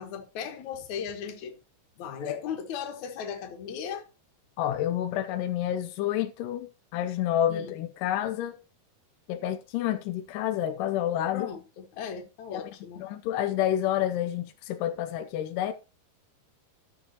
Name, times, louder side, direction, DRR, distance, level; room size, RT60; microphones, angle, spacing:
voice 1, 0.0-1.6 2.0-4.1 7.5-7.7 11.3-13.1, left 7 dB, 60° left, 2.4 m, -37 dB
voice 2, 4.6-6.7 6.9-8.6 9.3-11.5 12.5-12.6 13.0-15.7, left 11 dB, 80° left, 1.9 m, -29 dB
14.5 x 7.0 x 2.9 m
omnidirectional pair, 4.5 m